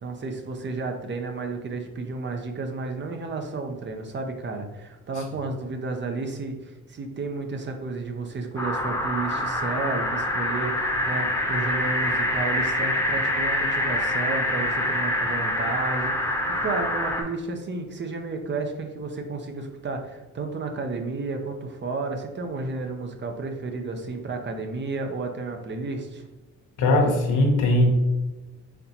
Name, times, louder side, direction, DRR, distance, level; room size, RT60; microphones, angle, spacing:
voice 1, 0.0-16.1 16.6-26.2, right 3 dB, 40° right, 4 dB, 0.7 m, -32 dB
sound 1, 8.6-17.2, left 1 dB, 10° left, 0.9 m, -26 dB
voice 2, 26.8-27.9, left 1 dB, 90° left, 0 dB, 1.1 m, -19 dB
4.2 x 4.0 x 2.8 m, 1.1 s
cardioid pair, 90°, 30 cm